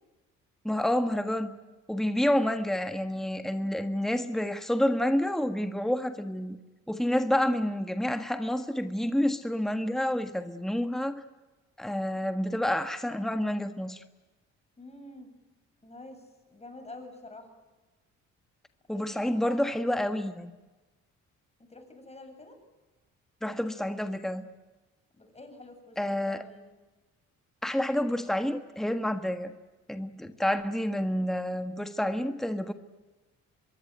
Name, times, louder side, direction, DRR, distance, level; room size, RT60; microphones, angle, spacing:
voice 1, 0.6-1.6 1.9-6.6 6.9-11.2 11.8-14.0 18.9-20.5 23.4-24.5 26.0-26.4 27.6-29.5 29.9-32.7, left 1 dB, ahead, 8 dB, 1.5 m, -29 dB
voice 2, 14.8-15.3 15.8-17.5 18.9-20.2 21.7-22.6 25.1-26.8, left 2 dB, 20° left, 5 dB, 7.9 m, -48 dB
25.0 x 22.5 x 9.2 m, 1.2 s
cardioid pair, 90°, 30 cm